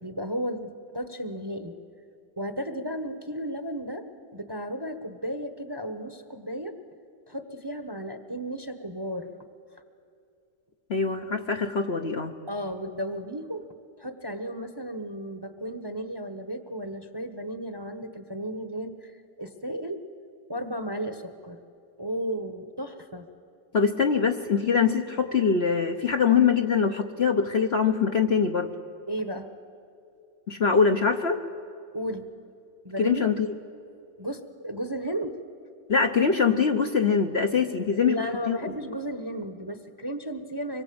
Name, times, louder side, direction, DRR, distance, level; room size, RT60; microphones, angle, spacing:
voice 1, 0.0-1.8 2.4-4.1 4.3-6.8 7.3-9.3 12.5-13.7 14.0-20.0 20.5-21.6 22.0-23.3 29.1-29.5 31.9-32.3 32.8-33.3 34.2-35.4 38.1-40.8, equal, 15° right, 8 dB, 1.0 m, -34 dB
voice 2, 10.9-12.3 23.7-28.7 30.5-31.4 33.0-33.5 35.9-38.2 38.5-38.6, left 6 dB, 45° left, 4 dB, 1.0 m, -23 dB
25.0 x 22.0 x 8.7 m, 2.6 s
omnidirectional pair, 1.8 m